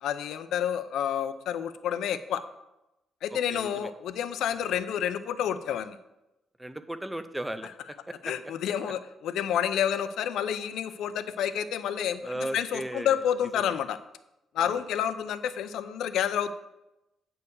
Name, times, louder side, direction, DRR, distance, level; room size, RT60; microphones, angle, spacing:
voice 1, 0.0-2.4 3.2-6.0 8.2-14.0 14.5-16.6, left 9 dB, 90° left, 12 dB, 0.5 m, -29 dB
voice 2, 3.3-3.9 6.6-8.3 12.2-13.2 13.5-13.8 14.6-14.8, right 1 dB, 5° right, 10 dB, 0.4 m, -37 dB
8.4 x 4.6 x 6.6 m, 0.93 s
cardioid pair, 160°, 0 cm